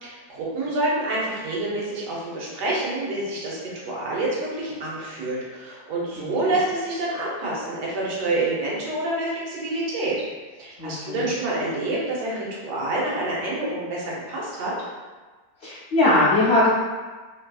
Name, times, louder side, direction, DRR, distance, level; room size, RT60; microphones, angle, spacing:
voice 1, 0.0-10.3 10.6-14.7, right 2 dB, 90° right, -6 dB, 1.4 m, -27 dB
voice 2, 10.8-11.3 15.6-16.7, left 2 dB, 60° left, -9 dB, 0.7 m, -20 dB
3.1 x 2.6 x 2.3 m, 1.3 s
omnidirectional pair, 1.7 m